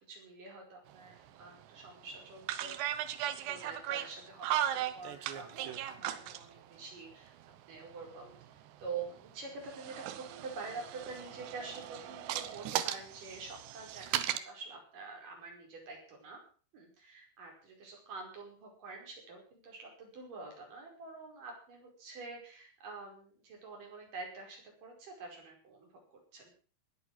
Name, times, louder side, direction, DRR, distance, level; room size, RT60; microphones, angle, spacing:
voice 1, 0.1-4.5 4.7-7.4 7.7-16.4 16.7-26.6, right 4 dB, 45° right, 1 dB, 6.4 m, -47 dB
sound 1, 0.9-1.0 1.4-1.6 2.4-6.5 7.5-9.2 9.6-14.4, right 12 dB, 75° right, 3.0 m, -37 dB
20.0 x 8.8 x 6.1 m, 0.40 s
omnidirectional pair, 5.3 m